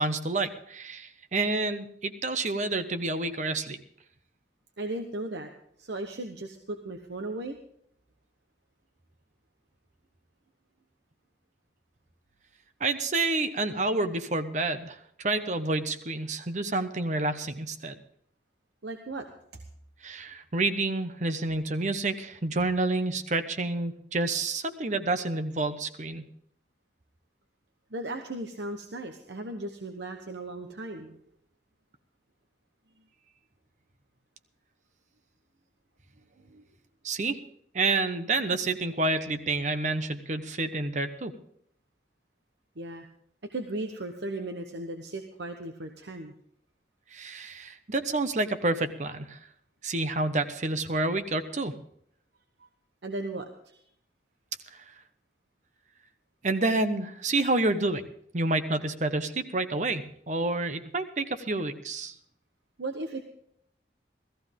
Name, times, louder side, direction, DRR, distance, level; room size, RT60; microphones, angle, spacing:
voice 1, 0.0-3.8 12.8-17.9 20.0-26.3 37.0-37.4 37.7-41.3 47.1-49.4 49.8-51.7 56.4-58.1 58.3-62.1, right 2 dB, 45° right, 10 dB, 1.0 m, -29 dB
voice 2, 4.8-5.5 5.8-7.6 18.8-19.3 27.9-31.2 36.5-36.6 42.8-43.1 43.5-46.3 52.6-52.7 53.0-53.8 62.8-63.2, right 2 dB, 80° right, 5 dB, 1.1 m, -36 dB
16.5 x 14.5 x 3.7 m, 0.68 s
head